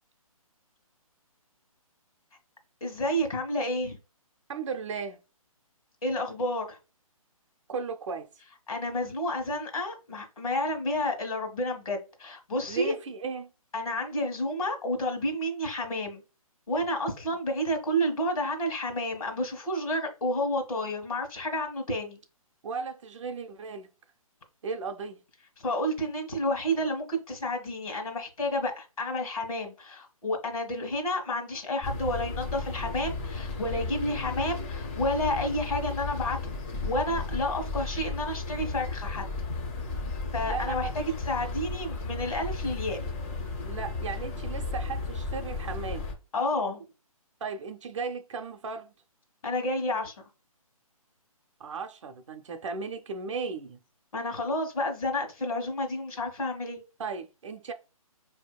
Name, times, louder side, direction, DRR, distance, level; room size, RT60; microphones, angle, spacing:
voice 1, 2.8-4.0 6.0-6.8 8.7-12.9 13.7-16.2 16.7-22.2 25.6-36.5 36.8-39.3 40.3-43.0 46.3-46.8 49.4-50.2 54.1-56.8, left 1 dB, 70° left, 1.2 m, -30 dB
voice 2, 4.5-5.2 7.7-8.3 12.7-13.5 22.6-23.9 24.6-25.2 40.5-41.1 43.6-46.1 47.4-48.9 51.6-53.8 57.0-57.7, right 5 dB, 55° right, 0.6 m, -36 dB
sound 1, 31.8-46.1, left 3 dB, 25° left, 0.5 m, -34 dB
4.5 x 2.7 x 2.2 m
hypercardioid pair, 145°, 19 cm